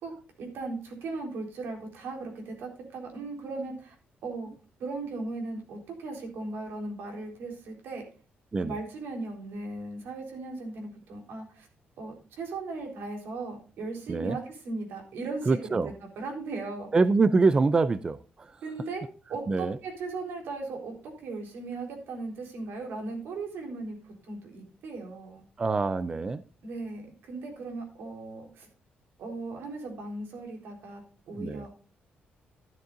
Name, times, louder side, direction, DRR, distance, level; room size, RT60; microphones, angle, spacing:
voice 1, 0.0-3.9 4.2-4.5 4.8-8.1 8.6-11.7 12.0-16.9 18.6-19.0 19.3-25.4 26.6-28.7 29.2-31.7, right 3 dB, 90° right, 3.9 m, -37 dB
voice 2, 15.5-15.9 16.9-18.6 19.5-19.8 25.6-26.4 31.4-31.7, right 4 dB, 25° right, 0.4 m, -25 dB
12.5 x 11.5 x 2.5 m
cardioid pair, 160°, 4 cm